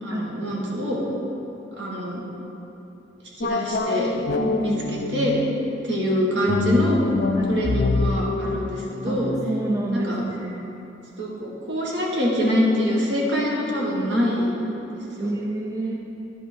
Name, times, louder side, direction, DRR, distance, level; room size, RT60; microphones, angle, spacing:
voice 1, 0.0-1.0 1.8-2.2 3.4-4.1 4.6-5.4 5.8-7.0 7.5-9.3 9.9-10.2 11.2-14.7 14.9-15.3, equal, 70° right, -4 dB, 1.5 m, -25 dB
sound 1, 3.4-5.7 6.4-9.8, left 3 dB, 55° left, 0.4 m, -26 dB
voice 2, 4.4-4.8 7.4-7.7 9.1-9.2 9.5-10.7 15.2-16.0, right 2 dB, 15° right, 0 dB, 0.4 m, -28 dB
10.5 x 5.4 x 4.4 m, 3.0 s
head